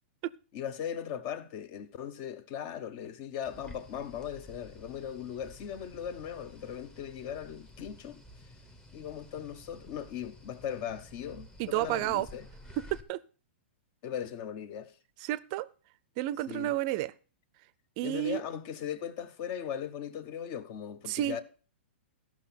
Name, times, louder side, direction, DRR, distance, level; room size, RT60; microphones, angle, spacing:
voice 1, 0.5-8.2 8.9-12.5 14.0-14.9 16.5-16.7 18.0-21.4, left 9 dB, 40° left, 0.9 m, -38 dB
sound 1, 3.4-13.0, equal, 10° left, 1.0 m, -52 dB
voice 2, 11.6-12.3 12.8-13.2 15.2-15.7 16.2-17.1 18.0-18.4 21.1-21.4, right 15 dB, 40° right, 0.5 m, -31 dB
14.0 x 6.0 x 5.8 m
hypercardioid pair, 150°, 7 cm